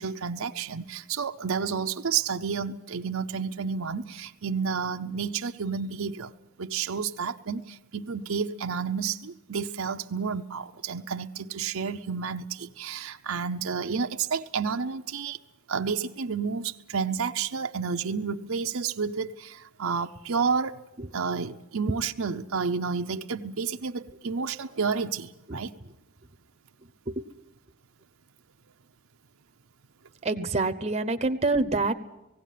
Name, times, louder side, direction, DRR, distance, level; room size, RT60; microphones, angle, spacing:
voice 1, 0.0-6.3 6.6-15.4 15.7-20.8 21.1-25.7, right 5 dB, 70° right, 6 dB, 0.7 m, -30 dB
voice 2, 30.2-31.9, right 3 dB, 30° right, 7 dB, 0.8 m, -26 dB
18.0 x 16.5 x 9.3 m, 0.95 s
head